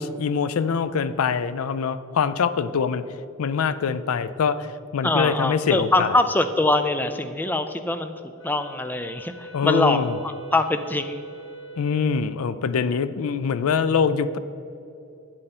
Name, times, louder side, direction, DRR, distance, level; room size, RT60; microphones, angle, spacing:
voice 1, 0.0-3.0 3.4-6.1 9.5-10.1 11.8-14.4, left 6 dB, 85° left, 14 dB, 0.4 m, -24 dB
voice 2, 5.0-8.1 8.4-11.2, left 2 dB, 10° left, 9 dB, 0.3 m, -23 dB
Wind instrument woodwind instrument, 8.4-12.2, right 2 dB, 60° left, 1.6 m, -42 dB
8.9 x 7.6 x 4.2 m, 2.9 s
head